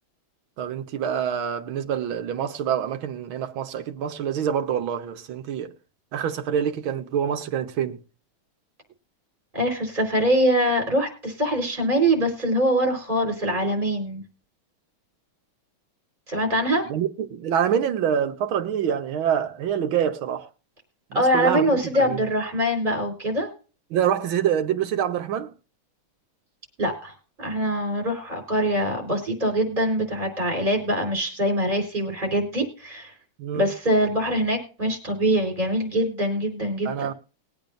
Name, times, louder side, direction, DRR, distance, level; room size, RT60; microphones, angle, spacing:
voice 1, 0.6-5.7 6.1-8.0 16.9-20.5 21.1-22.2 23.9-25.5 33.4-33.7 36.8-37.1, right 9 dB, 70° right, 1.8 m, -26 dB
voice 2, 9.5-14.2 16.3-16.8 21.1-23.5 26.8-27.1 27.4-33.1 33.5-36.9, equal, 20° right, 4.4 m, -23 dB
21.5 x 8.7 x 2.6 m
omnidirectional pair, 2.4 m